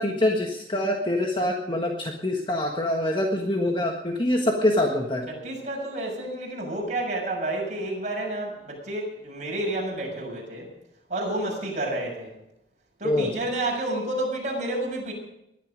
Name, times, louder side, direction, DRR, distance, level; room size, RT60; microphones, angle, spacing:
voice 1, 0.0-5.3 13.0-13.3, left 1 dB, 25° left, 2 dB, 1.6 m, -25 dB
voice 2, 5.3-10.7 11.1-12.3 13.0-15.1, right 1 dB, 40° right, -1 dB, 6.7 m, -30 dB
21.0 x 11.5 x 5.2 m, 0.84 s
head